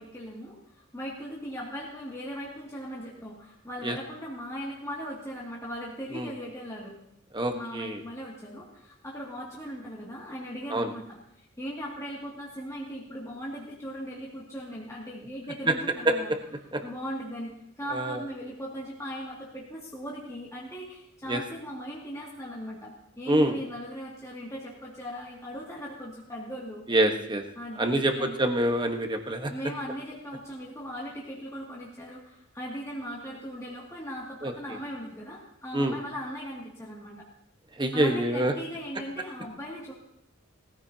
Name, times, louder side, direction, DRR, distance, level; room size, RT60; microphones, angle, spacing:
voice 1, 0.0-6.9 7.5-16.3 16.8-26.8 27.6-28.4 29.5-37.3 37.9-39.9, equal, 15° left, -6 dB, 2.4 m, -39 dB
voice 2, 7.3-8.0 10.7-10.9 15.7-15.8 16.0-16.1 16.7-16.8 17.9-18.2 21.3-21.4 23.3-23.6 26.9-27.4 27.8-29.5 34.4-34.5 35.7-35.9 37.8-38.5, right 1 dB, 20° right, 4 dB, 1.2 m, -25 dB
19.0 x 15.0 x 2.9 m, 0.75 s
head